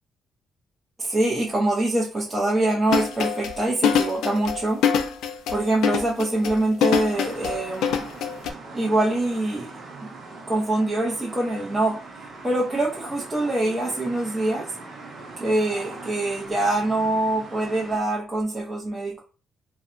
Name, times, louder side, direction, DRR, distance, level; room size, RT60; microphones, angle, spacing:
voice 1, 1.0-4.8 5.5-8.0 8.7-9.7 10.5-12.0 12.4-14.7 15.4-19.2, right 2 dB, 20° right, -4 dB, 0.7 m, -24 dB
sound 1, 2.9-8.5, left 7 dB, 85° left, 0.4 m, -24 dB
sound 2, 7.1-18.0, right 3 dB, 55° right, 0.9 m, -41 dB
2.6 x 2.2 x 2.4 m, 0.34 s
cardioid pair, 90°, 0 cm